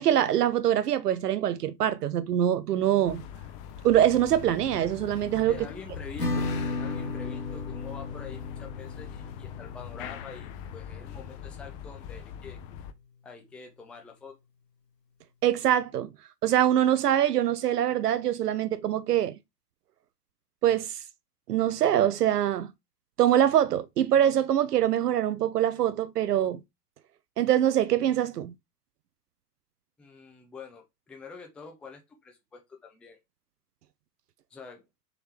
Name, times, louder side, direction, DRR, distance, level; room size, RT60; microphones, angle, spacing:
voice 1, 0.0-3.2 3.8-5.5 15.4-16.1 16.4-19.3 20.6-21.0 21.5-22.7 23.2-26.6 27.4-28.5, right 11 dB, 75° right, 0.6 m, -24 dB
sound 1, 3.0-12.9, left 9 dB, 35° left, 0.6 m, -42 dB
voice 2, 5.5-6.5 6.8-12.6 13.2-14.4 30.0-33.2 34.5-34.8, left 4 dB, 5° left, 0.3 m, -46 dB
Acoustic guitar / Strum, 6.2-11.6, left 3 dB, 90° left, 1.3 m, -35 dB
3.8 x 3.1 x 4.3 m
figure-of-eight pair, 90°, 48 cm